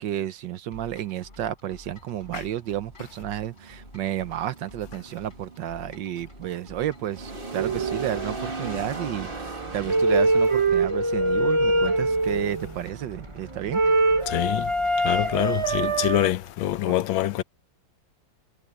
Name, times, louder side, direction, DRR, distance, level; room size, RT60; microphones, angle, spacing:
voice 1, 0.0-13.8 15.9-16.0 16.9-17.0, right 11 dB, 70° right, 1.4 m, -31 dB
sound 1, 0.7-16.6, left 1 dB, 25° left, 5.7 m, -50 dB
sound 2, 1.9-16.3, right 2 dB, 25° right, 2.4 m, -41 dB
sound 3, 7.6-16.3, right 2 dB, 40° right, 0.4 m, -24 dB
voice 2, 14.3-14.7 15.0-17.4, left 13 dB, 80° left, 1.5 m, -25 dB
omnidirectional pair, 2.1 m